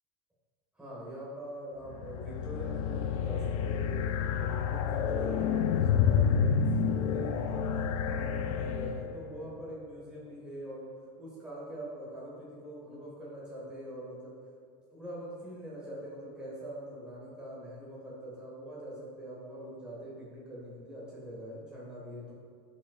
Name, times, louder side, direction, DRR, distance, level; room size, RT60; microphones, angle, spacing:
voice 1, 0.7-4.0 4.4-7.7 8.0-10.9 11.2-14.3 14.9-22.3, right 1 dB, 5° right, -6 dB, 1.6 m, -43 dB
sound 1, 1.9-9.3, left 7 dB, 80° left, 0.6 m, -29 dB
10.5 x 5.3 x 2.5 m, 2.1 s
supercardioid pair, 180°, 17 cm